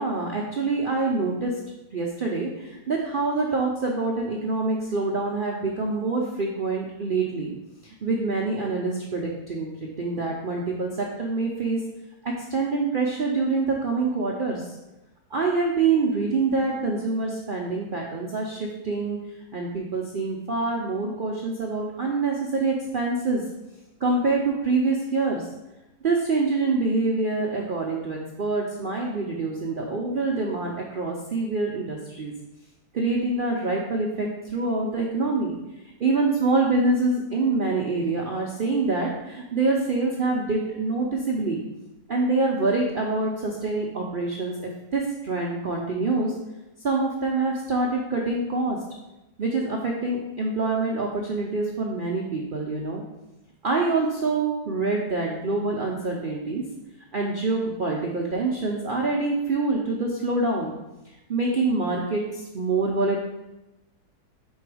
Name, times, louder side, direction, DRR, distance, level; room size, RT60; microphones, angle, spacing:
voice 1, 0.0-1.6 1.9-7.5 7.8-11.8 12.2-14.7 15.3-19.2 19.5-23.4 24.0-25.5 26.0-32.3 32.9-35.6 36.0-41.6 42.1-46.3 46.8-48.8 49.4-53.0 53.6-56.6 57.1-60.8 61.3-63.2, right 3 dB, 60° right, -2 dB, 0.5 m, -26 dB
5.2 x 3.8 x 4.8 m, 0.96 s
omnidirectional pair, 1.7 m